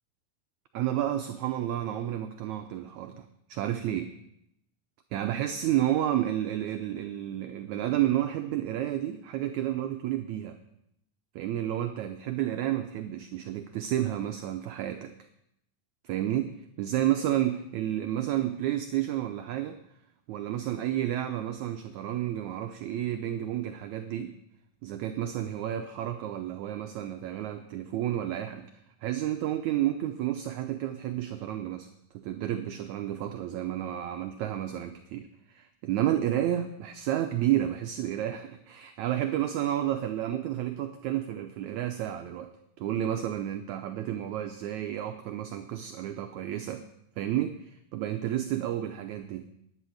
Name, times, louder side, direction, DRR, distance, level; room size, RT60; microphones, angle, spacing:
voice 1, 0.7-4.1 5.1-10.6 11.3-15.1 16.0-16.5 16.8-19.8 20.3-24.3 24.8-28.7 29.0-31.9 32.1-42.5 42.8-46.8 47.2-49.5, right 12 dB, 85° right, 7 dB, 1.6 m, -31 dB
11.0 x 10.0 x 6.4 m, 0.79 s
omnidirectional pair, 4.1 m